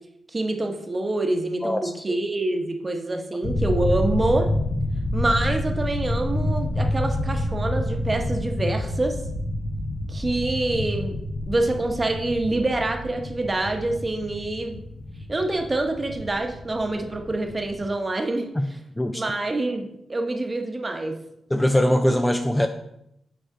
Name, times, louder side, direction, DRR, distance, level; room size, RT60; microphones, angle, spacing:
voice 1, 0.3-4.5 5.1-9.2 10.1-11.1 11.5-14.8 15.3-18.5 19.1-21.2, right 2 dB, 25° right, 4 dB, 1.0 m, -26 dB
voice 2, 1.6-2.2 18.6-18.7 19.0-19.2 21.5-22.7, left 1 dB, 10° left, 7 dB, 0.4 m, -22 dB
sound 1, 3.4-17.9, left 1 dB, 50° left, 1.0 m, -28 dB
8.1 x 4.8 x 3.7 m, 0.79 s
cardioid pair, 100°, 0 cm